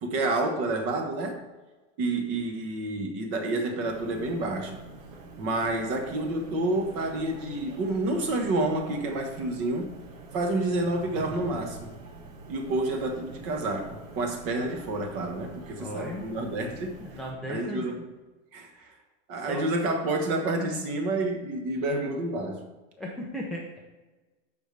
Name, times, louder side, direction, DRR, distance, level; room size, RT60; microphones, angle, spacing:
voice 1, 0.0-1.4 2.0-4.8 5.4-9.9 10.3-11.9 12.5-17.0 17.5-18.1 18.5-18.9 19.3-22.6, right 2 dB, 35° right, 4 dB, 1.4 m, -29 dB
sound 1, 3.8-17.3, right 3 dB, 80° right, 1.8 m, -46 dB
voice 2, 15.8-16.5 17.0-17.8 18.7-18.9 19.3-19.7 23.0-23.8, left 1 dB, ahead, -2 dB, 0.5 m, -37 dB
13.5 x 5.3 x 3.3 m, 1.2 s
supercardioid pair, 160°, 38 cm